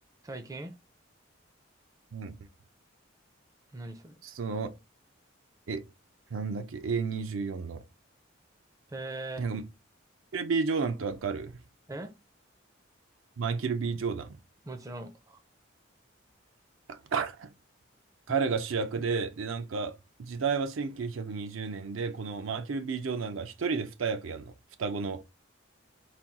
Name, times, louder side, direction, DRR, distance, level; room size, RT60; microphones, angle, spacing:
voice 1, 0.2-0.8 3.7-4.2 8.9-9.5 11.9-12.1 14.7-15.4, right 2 dB, 15° right, 0.4 m, -40 dB
voice 2, 4.2-4.7 5.7-5.8 6.3-7.8 9.4-9.7 10.3-11.6 13.4-14.4 16.9-17.5 18.3-19.9 20.2-24.5 24.8-25.2, right 5 dB, 80° right, 0.5 m, -31 dB
4.3 x 2.3 x 3.5 m
head